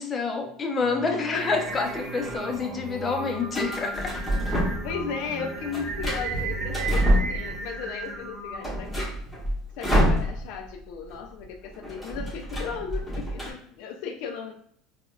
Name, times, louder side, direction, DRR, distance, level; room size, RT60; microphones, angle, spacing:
voice 1, 0.0-4.1, left 4 dB, 25° left, 3 dB, 0.6 m, -28 dB
Singing, 0.8-8.2, right 4 dB, 65° right, 0.4 m, -41 dB
voice 2, 1.1-1.6 4.2-9.0 9.8-14.5, left 6 dB, 70° left, 4 dB, 0.4 m, -36 dB
Singing 2, 1.3-8.9, right 3 dB, 30° right, 1.0 m, -36 dB
sound 1, 1.6-2.4 3.5-5.0 5.3-7.8 8.1-8.2 8.5-10.7 11.0-11.2 11.4-13.5, equal, 10° left, 1.1 m, -27 dB
3.9 x 2.2 x 2.3 m, 0.65 s
supercardioid pair, 105°, 0 cm